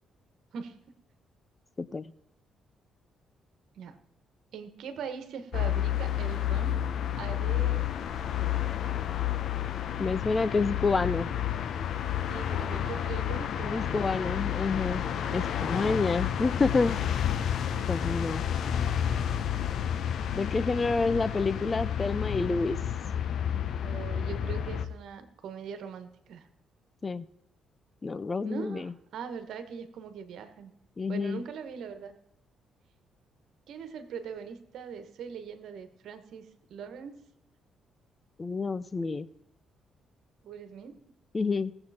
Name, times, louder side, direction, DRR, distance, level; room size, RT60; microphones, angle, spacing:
voice 1, 1.8-2.1 10.0-11.3 13.6-15.0 15.3-17.0 17.9-18.4 20.3-22.8 27.0-27.3 28.0-28.9 31.0-31.4 38.4-39.3 41.3-41.7, left 4 dB, 30° left, 17 dB, 0.6 m, -28 dB
voice 2, 4.5-6.8 7.2-7.9 8.4-8.6 12.3-14.4 15.0-16.0 17.7-17.9 23.8-26.5 28.4-30.7 31.1-32.2 33.7-37.2 40.4-41.0, right 6 dB, 75° right, 10 dB, 1.6 m, -41 dB
sound 1, 5.5-24.9, left 10 dB, 65° left, 0.9 m, -30 dB
18.5 x 7.8 x 4.4 m, 0.81 s
cardioid pair, 90°, 0 cm